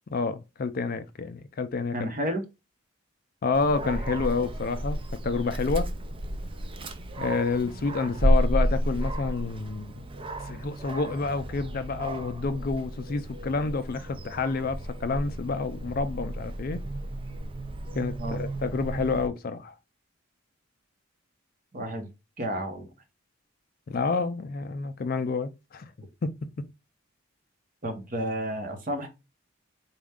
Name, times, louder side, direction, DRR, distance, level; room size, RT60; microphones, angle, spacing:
voice 1, 0.1-2.1 3.4-5.0 5.2-5.9 7.2-10.1 10.5-16.8 18.0-19.7 23.9-25.9 26.2-26.7, left 4 dB, 45° left, 0.4 m, -29 dB
voice 2, 1.9-2.4 18.2-18.4 21.7-22.1 22.4-22.9 27.8-29.1, right 1 dB, 40° right, 1.0 m, -31 dB
Dog, 3.5-19.3, right 1 dB, 25° right, 0.4 m, -32 dB
4.3 x 2.4 x 3.5 m
head